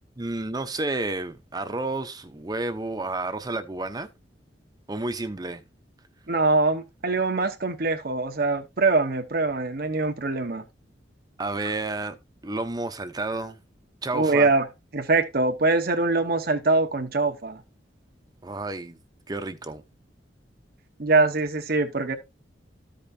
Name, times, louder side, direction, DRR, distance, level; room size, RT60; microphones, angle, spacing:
voice 1, 0.2-4.1 4.9-5.6 11.4-12.2 12.4-13.6 14.0-14.5 18.4-19.0 19.3-19.8, right 2 dB, 20° right, 0.8 m, -30 dB
voice 2, 6.3-10.6 14.1-14.7 14.9-17.6 21.0-22.1, right 3 dB, 55° right, 0.9 m, -23 dB
14.0 x 5.2 x 2.7 m
head